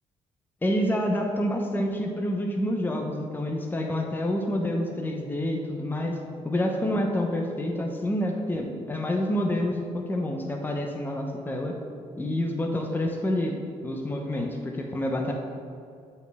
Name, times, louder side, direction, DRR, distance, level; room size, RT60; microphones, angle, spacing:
voice 1, 0.6-6.2 6.4-11.7 12.2-15.3, left 1 dB, 15° left, 1 dB, 0.8 m, -28 dB
8.1 x 4.4 x 3.5 m, 2.4 s
supercardioid pair, 70°, 13 cm